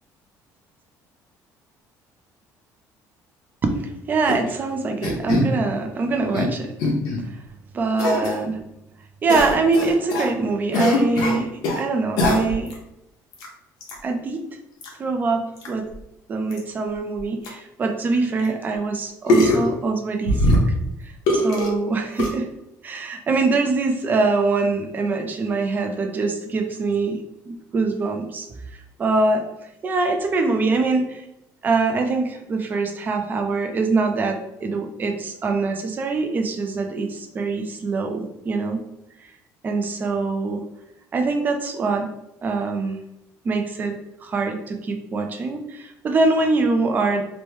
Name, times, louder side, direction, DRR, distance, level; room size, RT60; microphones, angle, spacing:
voice 1, 3.6-6.7 7.7-8.6 9.2-11.5 11.8-12.7 14.0-14.4 15.0-15.9 16.3-20.6 21.3-22.5 22.8-28.5 28.7-29.4 29.8-31.2 31.6-38.8 39.6-40.6 41.1-42.1 42.4-43.0 43.4-47.2, right 3 dB, 25° right, 5 dB, 0.4 m, -23 dB
sound 1, 4.2-4.5 5.0-5.5 6.1-6.5 6.8-7.2 8.0-8.4 9.3-10.3 10.7-11.8 12.2-12.7 13.3-13.5 13.8-13.9 14.8-14.9 15.6-15.7 15.9-16.0 16.5-16.6 17.2-17.3 17.4-17.5 18.4-18.5 19.3-19.7 20.2-20.9 21.3-21.7 22.2-22.3, left 1 dB, 75° left, 0.8 m, -21 dB
3.0 x 2.1 x 3.2 m, 0.87 s
cardioid pair, 155°, 7 cm